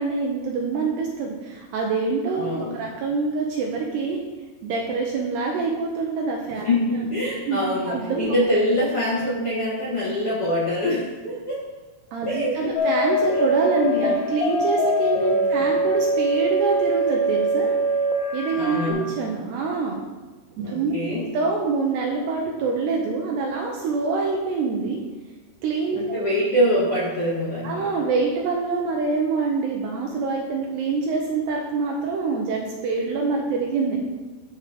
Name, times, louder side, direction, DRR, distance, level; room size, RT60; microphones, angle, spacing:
voice 1, 0.0-4.2 4.6-6.7 6.9-7.1 7.5-8.3 12.1-17.7 18.3-20.0 20.6-25.0 25.6-26.0 27.6-34.0, right 4 dB, 80° right, -1 dB, 2.7 m, -25 dB
voice 2, 2.4-2.8 6.6-11.6 12.3-12.6 13.3-13.4 13.9-14.4 15.2-15.7 18.6-19.0 20.6-21.3 25.9-27.9, equal, 65° left, -7 dB, 1.4 m, -24 dB
sound 1, 12.8-18.9, right 1 dB, 85° left, 3.5 m, -23 dB
13.0 x 4.5 x 5.0 m, 1.3 s
omnidirectional pair, 5.2 m